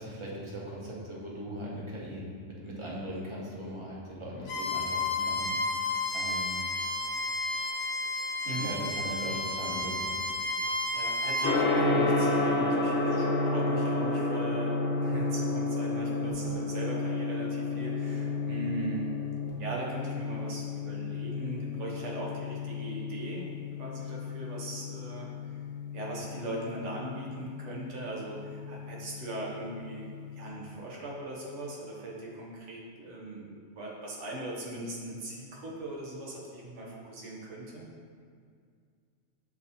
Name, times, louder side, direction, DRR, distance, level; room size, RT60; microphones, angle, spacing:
voice 1, 0.0-5.5 6.1-6.6 8.6-10.1, equal, 30° right, -5 dB, 0.6 m, -39 dB
Bowed string instrument, 4.4-11.5, left 2 dB, 85° left, 1.0 m, -32 dB
voice 2, 10.9-19.1 19.6-23.5 23.8-25.6 25.9-30.1 30.3-37.8, right 1 dB, 85° right, -3 dB, 1.2 m, -39 dB
Gong, 11.4-30.4, left 2 dB, 55° left, 0.9 m, -31 dB
6.4 x 2.6 x 2.7 m, 2.2 s
omnidirectional pair, 1.2 m